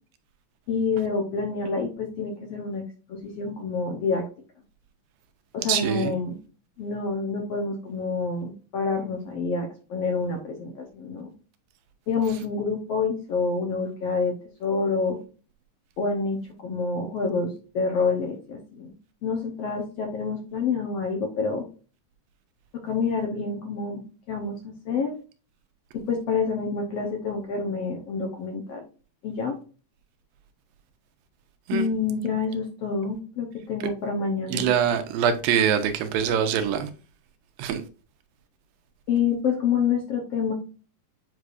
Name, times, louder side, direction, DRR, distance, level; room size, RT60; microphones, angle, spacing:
voice 1, 0.7-4.2 5.5-6.4 6.8-11.3 12.1-14.3 14.6-15.2 16.0-18.9 19.2-21.7 22.7-25.1 25.9-28.8 29.2-29.5 31.7-34.7 39.1-40.5, left 4 dB, 65° left, 1.7 m, -27 dB
voice 2, 5.7-6.1 31.7-31.9 34.5-36.9 37.6-37.8, right 8 dB, 85° right, 2.6 m, -24 dB
8.4 x 4.8 x 2.6 m
omnidirectional pair, 4.0 m